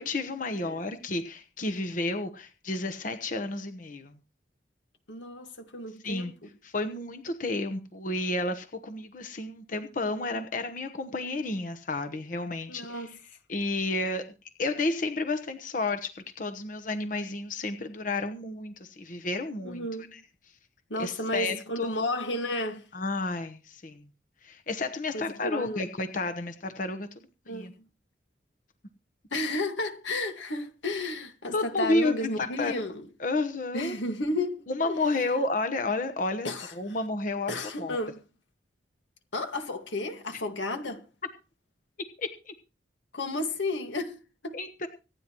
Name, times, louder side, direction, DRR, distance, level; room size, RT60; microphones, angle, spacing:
voice 1, 0.0-4.1 6.0-6.3 6.6-13.0 13.5-14.2 14.6-16.1 16.4-19.8 21.0-21.9 22.9-24.0 24.4-27.1 27.5-27.7 31.5-32.7 33.2-34.0 34.7-36.5 36.8-37.5 37.8-38.0 42.2-42.5 44.5-44.9, left 2 dB, 45° left, 1.0 m, -31 dB
voice 2, 5.1-6.5 12.7-13.2 19.6-20.1 20.9-22.9 25.1-25.9 27.5-27.7 29.3-33.1 33.7-35.3 36.4-37.0 37.5-38.2 39.3-41.0 43.1-44.6, left 2 dB, 80° left, 1.9 m, -33 dB
25.5 x 9.6 x 3.0 m
head